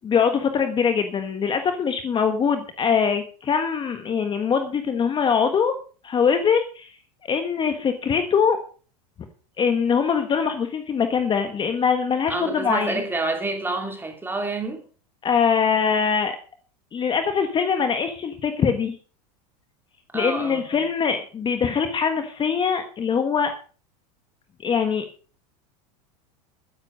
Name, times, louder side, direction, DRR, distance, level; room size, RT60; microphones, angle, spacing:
voice 1, 0.0-5.7 6.0-6.9 7.3-8.6 9.6-13.0 15.2-16.4 16.9-19.0 20.1-23.5 24.6-25.0, left 6 dB, 25° left, 1.4 m, -22 dB
voice 2, 12.3-14.8 20.1-20.9, right 2 dB, 10° right, 2.8 m, -28 dB
13.0 x 10.0 x 5.2 m
supercardioid pair, 125°, 20 cm